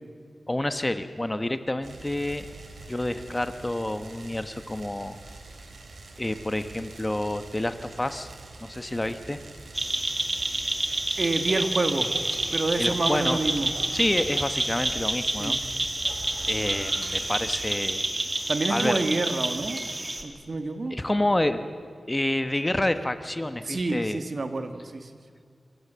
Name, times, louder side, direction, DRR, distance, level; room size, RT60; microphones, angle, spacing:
voice 1, 0.5-2.4 2.9-5.2 6.2-8.3 8.6-9.4 12.8-13.4 13.9-15.6 16.5-18.0 18.7-19.0 20.9-21.6 22.1-24.2, left 1 dB, 20° left, 10 dB, 1.1 m, -28 dB
sound 1, 1.8-17.8, right 3 dB, 80° right, 3.1 m, -45 dB
sound 2, 9.7-20.2, right 1 dB, 30° right, 2.2 m, -29 dB
voice 2, 11.2-12.1 12.5-13.7 15.4-15.6 18.5-19.9 20.2-21.0 23.6-25.1, right 2 dB, 55° right, 8 dB, 1.6 m, -28 dB
27.0 x 15.0 x 7.5 m, 2.2 s
cardioid pair, 65°, 0 cm